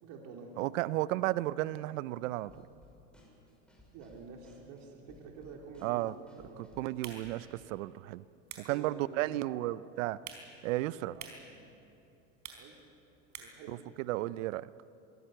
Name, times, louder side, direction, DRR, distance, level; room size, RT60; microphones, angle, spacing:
voice 1, 0.0-0.5 3.9-6.7 8.6-9.7 10.9-11.6 12.6-12.8 13.4-13.7, right 4 dB, 65° right, 3.3 m, -49 dB
voice 2, 0.6-2.7 5.8-6.1 6.6-8.2 8.6-10.2 10.6-11.2 13.7-14.7, right 17 dB, 80° right, 0.7 m, -33 dB
Drum kit / Snare drum, 2.5-7.7, left 1 dB, ahead, 6.1 m, -60 dB
sound 1, 6.8-13.7, right 7 dB, 45° right, 4.3 m, -52 dB
24.0 x 16.5 x 7.9 m
supercardioid pair, 100°, 39 cm